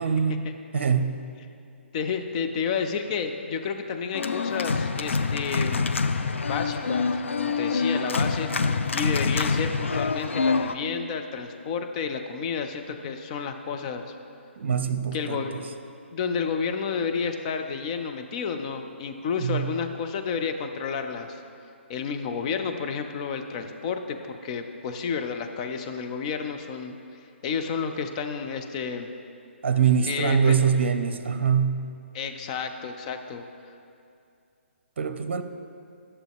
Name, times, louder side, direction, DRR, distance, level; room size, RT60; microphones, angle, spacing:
voice 1, 0.0-1.3 14.6-15.7 19.4-19.8 29.6-32.0 35.0-35.4, right 6 dB, 65° right, 9 dB, 0.6 m, -24 dB
voice 2, 1.9-5.9 6.5-7.1 7.4-14.1 15.1-15.5 16.1-21.4 21.9-26.9 27.4-29.1 30.1-30.7 32.1-33.4, left 6 dB, 35° left, 6 dB, 0.6 m, -31 dB
Organ, 4.1-10.8, left 4 dB, 75° left, 0.4 m, -26 dB
11.0 x 6.9 x 3.6 m, 2.5 s
figure-of-eight pair, 140°, 7 cm